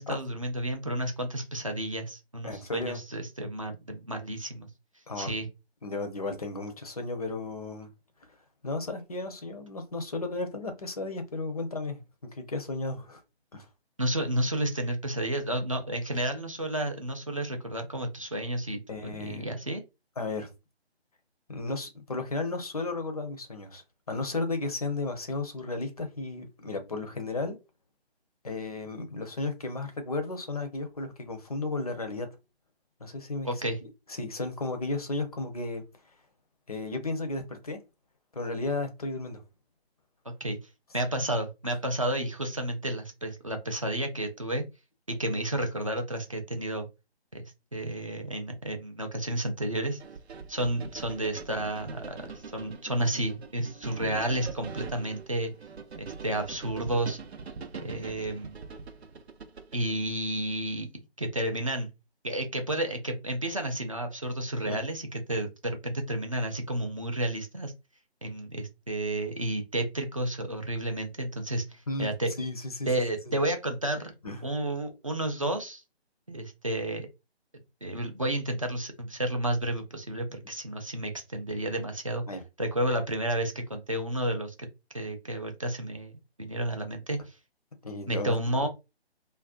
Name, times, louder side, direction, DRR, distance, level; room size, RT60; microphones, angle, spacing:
voice 1, 0.0-4.7 5.2-5.5 14.0-19.8 33.4-33.8 40.4-40.6 40.9-44.6 45.1-46.9 47.3-50.0 50.5-55.5 56.0-57.2 57.8-58.6 59.7-60.9 61.2-61.9 62.2-67.7 68.2-72.3 72.9-74.1 74.4-75.8 76.3-77.1 77.8-82.2 82.6-84.5 84.9-86.1 86.4-87.3 88.1-88.7, right 1 dB, 35° right, 0.4 m, -31 dB
voice 2, 2.4-3.0 5.1-5.4 5.8-7.9 8.6-12.0 12.3-13.2 13.5-13.7 18.9-19.5 20.2-20.5 21.5-27.6 28.4-32.3 33.0-35.8 36.7-37.8 38.3-39.4 64.6-64.8 71.9-72.1 72.4-72.9 73.3-73.4 74.2-74.4 82.3-82.4 87.8-88.3, left 3 dB, 35° left, 0.5 m, -34 dB
sound 1, 50.0-60.0, right 5 dB, 75° right, 0.6 m, -43 dB
2.4 x 2.1 x 2.4 m
figure-of-eight pair, 150°, 33 cm